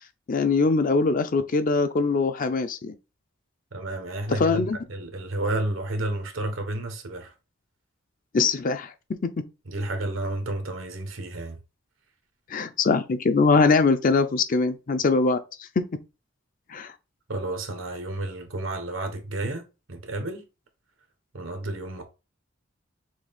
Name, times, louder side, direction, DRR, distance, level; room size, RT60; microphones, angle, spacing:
voice 1, 0.3-2.9 4.3-4.8 8.3-8.9 12.5-15.4 16.7-16.9, left 4 dB, 45° left, 0.5 m, -22 dB
voice 2, 3.7-7.3 9.7-11.6 17.3-20.4 21.3-22.0, right 1 dB, 90° right, 1.0 m, -31 dB
6.1 x 2.4 x 3.5 m
head